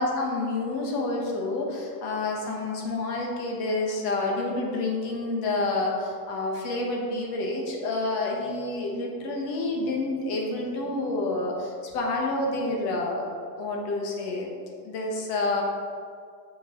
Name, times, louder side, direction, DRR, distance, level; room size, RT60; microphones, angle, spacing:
voice 1, 0.0-13.3 13.6-14.5 14.8-15.6, left 2 dB, 80° left, 0 dB, 1.6 m, -28 dB
6.8 x 6.1 x 3.9 m, 2.2 s
supercardioid pair, 115°, 48 cm